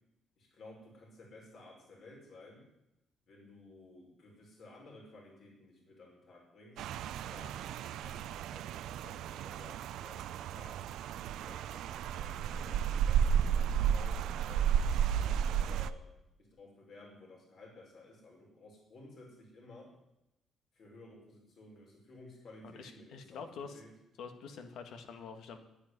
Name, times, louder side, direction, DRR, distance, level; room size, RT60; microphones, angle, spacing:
voice 1, 0.4-2.6 3.2-6.9 7.2-10.8 11.4-16.1 16.4-19.9 20.7-23.9, left 2 dB, 55° left, -1 dB, 5.6 m, -55 dB
Rain, 6.8-15.9, right 8 dB, 80° right, 0.6 m, -33 dB
voice 2, 22.6-23.8 24.2-25.6, left 5 dB, 70° left, 7 dB, 1.8 m, -46 dB
10.5 x 10.0 x 9.9 m, 0.89 s
cardioid pair, 130°, 0 cm